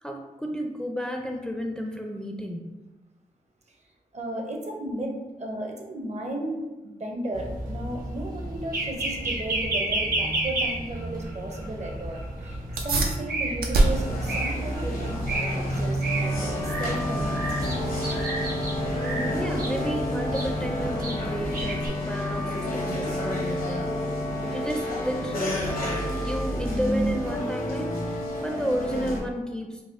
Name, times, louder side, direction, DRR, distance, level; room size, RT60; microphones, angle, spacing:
voice 1, 0.0-2.7 18.9-24.1 24.5-29.8, equal, 5° left, 2 dB, 0.4 m, -32 dB
voice 2, 4.1-17.9, right 1 dB, 50° right, 1 dB, 0.7 m, -35 dB
sound 1, 7.3-21.9, right 1 dB, 70° right, 1.0 m, -31 dB
sound 2, 12.8-22.7, right 2 dB, 90° right, 0.5 m, -31 dB
sound 3, 13.9-29.2, left 1 dB, 75° left, 0.8 m, -30 dB
4.0 x 2.2 x 2.5 m, 1.1 s
cardioid pair, 50°, 15 cm